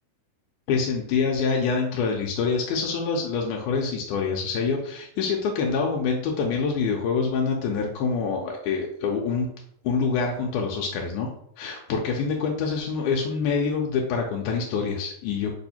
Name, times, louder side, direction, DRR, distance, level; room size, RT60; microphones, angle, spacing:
voice 1, 0.7-9.5 9.8-11.3 11.6-15.5, left 5 dB, 85° left, 0 dB, 2.1 m, -26 dB
4.9 x 2.6 x 4.1 m, 0.68 s
omnidirectional pair, 3.6 m